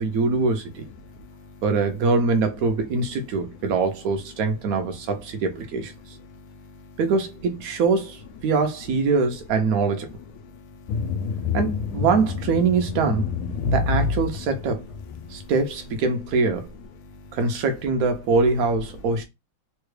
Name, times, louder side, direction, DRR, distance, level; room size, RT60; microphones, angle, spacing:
voice 1, 0.0-0.8 1.6-5.9 7.0-10.1 11.5-13.3 13.7-14.8 15.3-16.7 17.3-19.2, right 4 dB, 70° right, 0.8 m, -23 dB
voice 2, 1.0-1.6 6.2-7.0 10.4-11.6 13.6-13.7 15.2-15.5 17.0-17.4, left 3 dB, 70° left, 0.8 m, -47 dB
sound 1, 10.9-15.4, left 5 dB, 90° left, 1.4 m, -27 dB
3.4 x 2.3 x 3.2 m
omnidirectional pair, 2.3 m